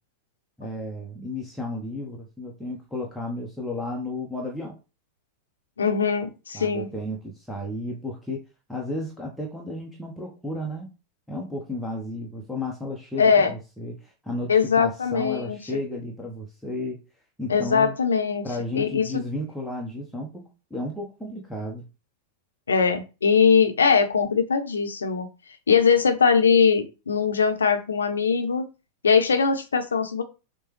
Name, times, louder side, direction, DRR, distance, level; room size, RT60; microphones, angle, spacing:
voice 1, 0.6-4.8 6.5-8.4 8.7-10.9 11.3-17.0 17.4-17.9 18.4-21.9, left 1 dB, ahead, -2 dB, 0.9 m, -33 dB
voice 2, 5.8-6.9 13.2-13.5 14.5-15.6 17.5-18.4 18.7-19.2 22.7-25.3 25.7-28.6 29.0-30.2, left 6 dB, 70° left, 6 dB, 0.8 m, -21 dB
6.4 x 2.3 x 3.3 m, 0.30 s
figure-of-eight pair, 90°, 0 cm